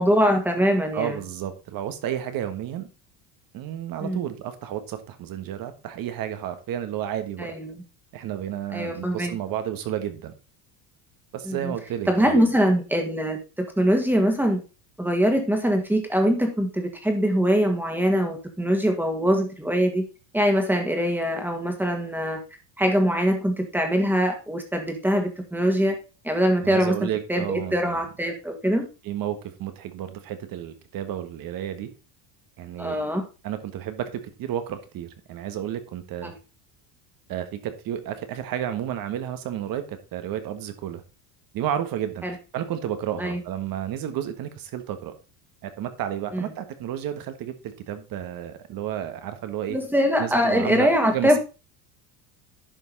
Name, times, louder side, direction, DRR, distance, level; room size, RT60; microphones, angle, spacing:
voice 1, 0.0-1.2 4.0-4.2 7.4-7.7 8.7-9.4 11.5-11.7 12.1-14.6 15.0-20.0 20.3-22.4 22.8-26.0 26.2-28.9 32.8-33.2 36.2-36.3 42.2-42.3 43.2-43.4 46.3-46.5 49.7-51.4, equal, 5° right, 4 dB, 1.8 m, -23 dB
voice 2, 0.9-2.9 3.5-7.5 8.1-10.3 11.3-12.5 26.6-28.0 29.0-31.9 32.6-33.0 33.4-36.3 37.3-41.0 41.5-45.1 45.6-49.8 50.2-51.4, right 10 dB, 50° right, 9 dB, 1.6 m, -31 dB
11.0 x 5.5 x 4.0 m, 0.31 s
cardioid pair, 140°, 45 cm